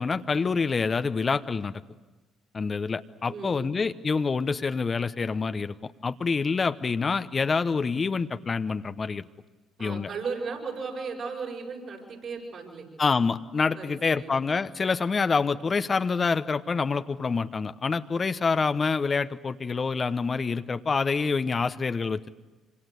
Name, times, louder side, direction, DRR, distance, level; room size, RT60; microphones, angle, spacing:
voice 1, 0.0-1.8 2.5-9.3 9.8-10.1 13.0-22.3, left 4 dB, 35° left, 11 dB, 1.0 m, -27 dB
voice 2, 3.3-3.8 9.8-12.9 13.7-14.3, right 5 dB, 60° right, 0 dB, 7.0 m, -36 dB
26.5 x 25.5 x 8.3 m, 1.2 s
hypercardioid pair, 55°, 0 cm